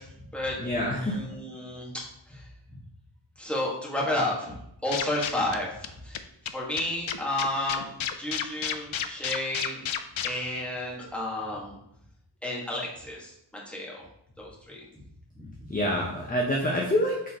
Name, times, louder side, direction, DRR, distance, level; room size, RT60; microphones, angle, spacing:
voice 1, 0.0-0.6 1.0-2.5 3.4-4.6 4.8-9.9 10.2-11.8 12.4-13.3 13.7-14.0 14.4-15.0 15.4-15.5, left 1 dB, 5° left, -5 dB, 1.8 m, -32 dB
voice 2, 0.6-1.2 15.7-17.2, equal, 20° left, -2 dB, 0.9 m, -26 dB
sound 1, 4.9-5.6 5.8-5.9 6.1-6.2 6.5-6.6 6.8-10.3, left 9 dB, 85° left, 0.6 m, -30 dB
6.7 x 4.0 x 3.7 m, 0.77 s
wide cardioid pair, 105°, 46 cm